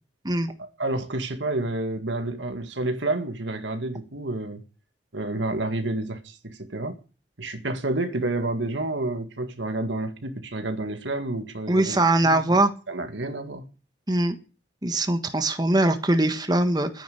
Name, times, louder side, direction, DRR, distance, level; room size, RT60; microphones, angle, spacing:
voice 1, 0.6-4.6 5.1-7.0 7.4-12.4 12.9-13.7, right 2 dB, 75° right, 2.0 m, -29 dB
voice 2, 11.7-12.7 14.1-14.4 14.8-17.0, right 2 dB, 20° right, 1.5 m, -22 dB
13.0 x 10.0 x 8.6 m
head